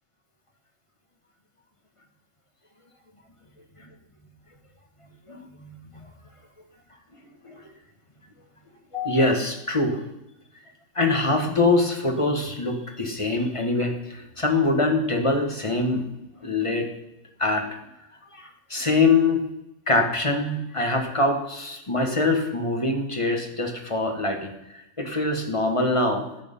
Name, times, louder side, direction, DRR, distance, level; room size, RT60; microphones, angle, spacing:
voice 1, 5.3-6.0 7.4-7.6 8.9-10.0 11.0-16.1 16.4-16.9 17.4-17.7 18.3-19.5 19.9-26.3, left 2 dB, 20° left, 3 dB, 1.8 m, -24 dB
17.5 x 6.8 x 5.6 m, 0.89 s
omnidirectional pair, 1.9 m